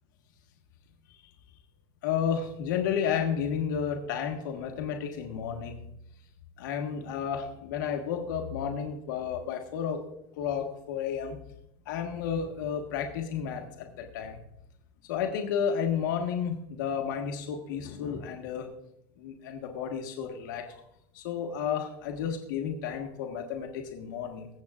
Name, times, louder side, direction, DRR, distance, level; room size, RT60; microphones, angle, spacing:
voice 1, 2.0-5.8 6.6-10.0 10.4-11.4 11.8-14.4 15.1-18.7 19.2-20.7 21.1-24.5, left 7 dB, 90° left, 3 dB, 1.5 m, -32 dB
22.0 x 7.7 x 2.5 m, 0.79 s
supercardioid pair, 135°, 10 cm